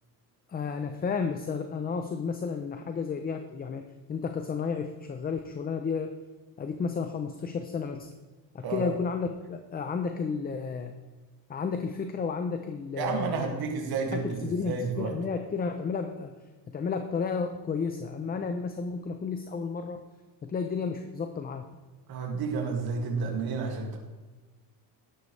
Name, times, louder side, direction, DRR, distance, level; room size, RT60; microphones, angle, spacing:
voice 1, 0.5-3.8 4.1-6.2 6.6-8.1 8.5-10.9 11.5-13.6 14.1-16.3 16.7-20.0 20.4-21.7, left 5 dB, 20° left, 6 dB, 0.6 m, -32 dB
voice 2, 13.0-15.1 22.1-24.0, right 5 dB, 55° right, 1 dB, 2.3 m, -31 dB
12.5 x 11.0 x 3.3 m, 1.3 s
cardioid pair, 135°, 43 cm